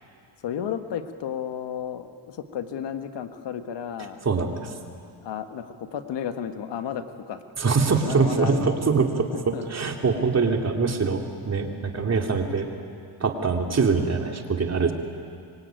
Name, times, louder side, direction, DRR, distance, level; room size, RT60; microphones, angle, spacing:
voice 1, 0.4-4.2 5.2-7.4 8.0-8.8 9.3-9.6, left 8 dB, 60° left, 7 dB, 1.8 m, -33 dB
voice 2, 4.2-4.7 7.6-12.7 13.2-14.9, right 4 dB, 35° right, 3 dB, 3.2 m, -23 dB
25.5 x 24.0 x 9.3 m, 2.4 s
cardioid pair, 100°, 47 cm